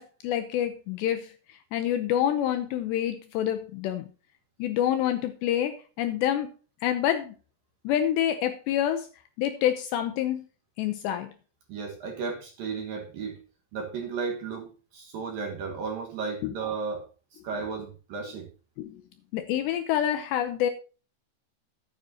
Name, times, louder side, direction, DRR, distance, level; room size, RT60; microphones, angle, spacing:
voice 1, 0.0-4.1 4.6-6.5 6.8-7.3 7.8-9.1 9.4-10.4 10.8-11.3 16.4-16.5 18.8-19.0 19.3-20.7, left 11 dB, 80° left, 2.6 m, -27 dB
voice 2, 11.7-13.4 13.7-18.5, right 5 dB, 60° right, 2.6 m, -34 dB
14.0 x 8.9 x 2.8 m
omnidirectional pair, 5.7 m